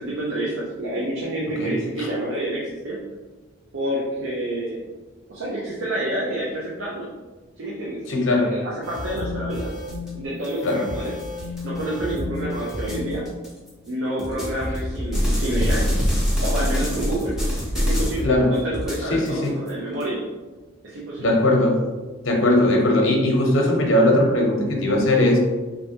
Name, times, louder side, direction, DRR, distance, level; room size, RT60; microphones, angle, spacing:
voice 1, 0.0-3.0 3.7-4.8 5.3-7.1 7.6-8.0 8.3-9.7 10.1-11.1 11.6-13.3 13.9-15.9 16.4-17.4 17.7-20.2 20.8-21.3, right 1 dB, 75° right, -5 dB, 0.6 m, -28 dB
voice 2, 8.1-8.5 10.6-10.8 18.2-18.5 19.1-19.6 21.2-21.8 22.2-25.4, left 1 dB, 75° left, 1 dB, 0.7 m, -19 dB
sound 1, 8.8-13.7 14.2-18.4 18.7-20.0, equal, ahead, 0.7 m, -26 dB
3.3 x 2.6 x 2.8 m, 1.3 s
head